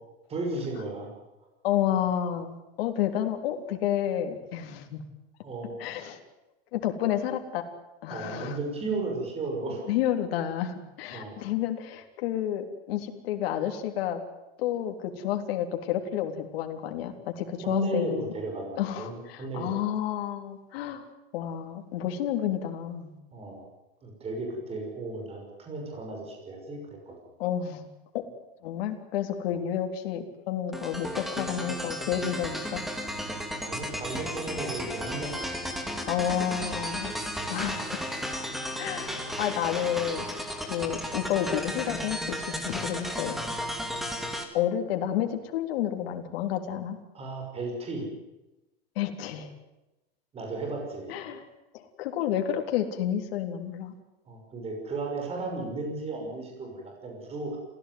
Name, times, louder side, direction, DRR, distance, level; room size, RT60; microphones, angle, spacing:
voice 1, 0.3-1.1 5.4-5.8 8.1-9.8 11.1-11.4 17.6-19.8 23.3-23.6 24.0-27.1 29.5-29.6 33.6-35.5 37.2-37.3 47.1-48.1 50.3-51.1 54.3-57.6, right 2 dB, 20° right, 2 dB, 6.0 m, -34 dB
voice 2, 1.6-5.0 5.8-6.2 6.7-7.6 8.0-8.6 9.9-14.2 14.6-18.3 18.8-21.1 21.3-23.1 27.4-27.9 28.1-28.2 28.6-32.8 36.1-37.1 37.5-37.8 38.8-40.3 40.6-43.4 44.5-47.0 49.0-49.5 51.1-51.4 51.7-53.9, left 10 dB, 65° left, 5 dB, 3.8 m, -30 dB
sound 1, 30.7-44.4, equal, ahead, 2.4 m, -34 dB
27.5 x 16.5 x 9.6 m, 1.0 s
supercardioid pair, 160°, 31 cm